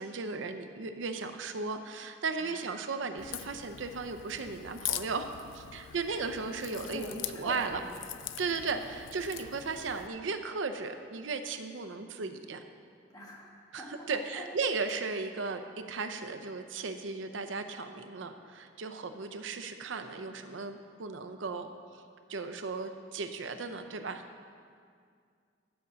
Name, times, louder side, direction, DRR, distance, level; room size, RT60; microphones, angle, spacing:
voice 1, 0.0-7.8 8.4-12.6 13.7-22.0 22.3-24.2, right 4 dB, 80° right, 8 dB, 0.6 m, -36 dB
voice 2, 2.4-2.7 5.8-6.4 6.8-7.8 8.4-8.8 13.1-14.5, equal, 20° left, -2 dB, 1.4 m, -45 dB
Crack, 3.2-10.1, left 12 dB, 85° left, 0.4 m, -42 dB
11.0 x 5.1 x 6.8 m, 2.2 s
head